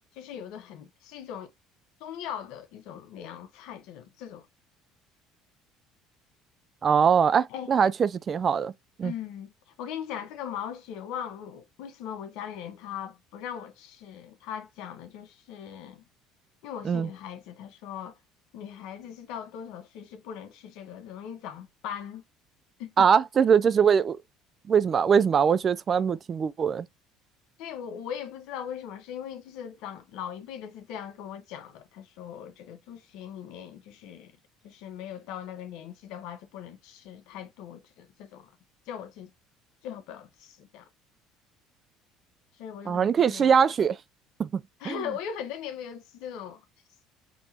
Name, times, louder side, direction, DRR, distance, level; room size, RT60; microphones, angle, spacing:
voice 1, 0.1-1.5 2.0-4.4 7.5-7.7 9.0-9.5 9.8-16.1 16.6-18.2 18.5-22.2 22.8-23.1 27.6-34.3 34.6-38.5 38.9-39.3 39.8-40.9 42.6-43.6 44.8-46.6, left 9 dB, 75° left, 1.0 m, -39 dB
voice 2, 6.8-8.7 9.0-9.1 16.8-17.1 23.0-24.2 24.7-26.9 42.9-44.0 44.4-44.5 44.8-45.0, right 7 dB, 35° right, 0.4 m, -22 dB
5.3 x 3.0 x 2.8 m
supercardioid pair, 100°, 0 cm